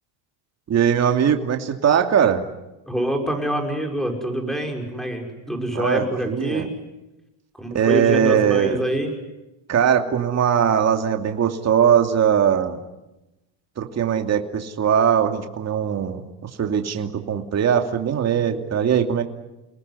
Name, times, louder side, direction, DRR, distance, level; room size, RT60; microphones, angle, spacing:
voice 1, 0.7-2.4 5.7-6.6 7.7-8.8 9.7-12.8 13.8-19.2, right 8 dB, 35° right, 5 dB, 2.7 m, -20 dB
voice 2, 2.9-6.7 7.5-9.1, right 1 dB, ahead, 3 dB, 5.8 m, -26 dB
29.5 x 19.5 x 9.7 m, 1.0 s
cardioid pair, 125°, 44 cm